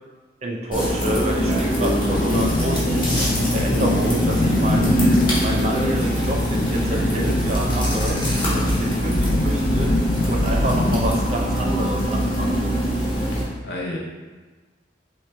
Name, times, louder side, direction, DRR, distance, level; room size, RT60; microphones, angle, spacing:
voice 1, 0.4-3.1 3.5-5.0 5.4-8.2 8.5-9.9 10.3-12.8, right 1 dB, 35° right, -1 dB, 0.5 m, -28 dB
sound 1, 0.7-13.4, equal, 25° left, 1.2 m, -23 dB
sound 2, 2.1-11.1, left 2 dB, 45° left, 0.4 m, -24 dB
voice 2, 13.3-14.0, left 1 dB, 65° left, -3 dB, 0.8 m, -32 dB
6.1 x 2.2 x 3.4 m, 1.3 s
head